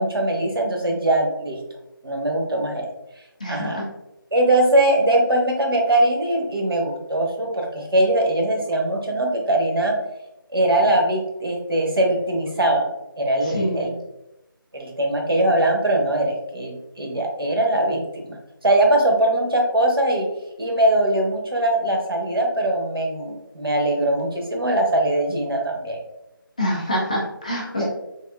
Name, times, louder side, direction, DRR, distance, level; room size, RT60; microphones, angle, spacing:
voice 1, 0.0-1.6 2.0-2.9 3.5-3.8 4.3-10.0 10.5-12.9 13.2-13.9 14.7-18.4 18.6-20.3 20.6-26.0 27.8-27.9, right 1 dB, 85° right, 1 dB, 0.9 m, -21 dB
voice 2, 3.4-3.8 13.4-13.9 26.6-27.9, equal, 20° left, -4 dB, 0.4 m, -25 dB
3.4 x 2.4 x 2.3 m, 0.89 s
figure-of-eight pair, 170°, 12 cm